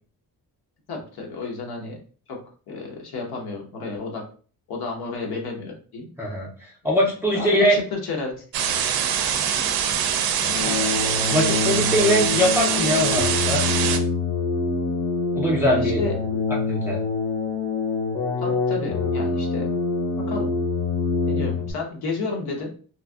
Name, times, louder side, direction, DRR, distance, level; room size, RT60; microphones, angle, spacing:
voice 1, 0.9-2.0 2.3-2.4 2.7-4.2 4.7-6.1 7.3-8.4 10.6-10.8 15.6-16.1 18.4-19.7 20.2-20.5 21.3-22.7, left 3 dB, 85° left, 0 dB, 1.0 m, -31 dB
voice 2, 6.2-7.8 11.3-13.6 15.3-16.0 16.7-17.0, equal, 5° right, -3 dB, 0.4 m, -22 dB
sound 1, 8.5-14.0, right 8 dB, 75° right, 0.5 m, -23 dB
sound 2, 10.4-21.7, left 4 dB, 55° left, 0.7 m, -25 dB
3.1 x 2.6 x 2.3 m, 0.41 s
cardioid pair, 135°, 37 cm